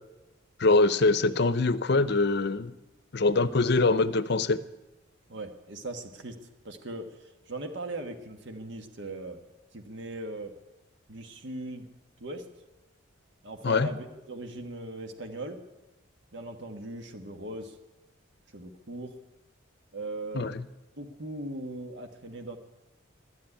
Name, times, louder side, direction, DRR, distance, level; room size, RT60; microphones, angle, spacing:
voice 1, 0.6-2.7 3.1-4.6 13.6-13.9 20.3-20.6, left 3 dB, 55° left, 15 dB, 0.7 m, -23 dB
voice 2, 5.3-6.4 6.6-9.4 9.7-10.5 11.1-11.8 12.2-12.4 13.4-15.6 16.3-17.8 18.5-19.1 19.9-20.5 21.0-22.6, right 2 dB, 60° right, 5 dB, 1.3 m, -39 dB
13.0 x 10.5 x 9.8 m, 1.0 s
head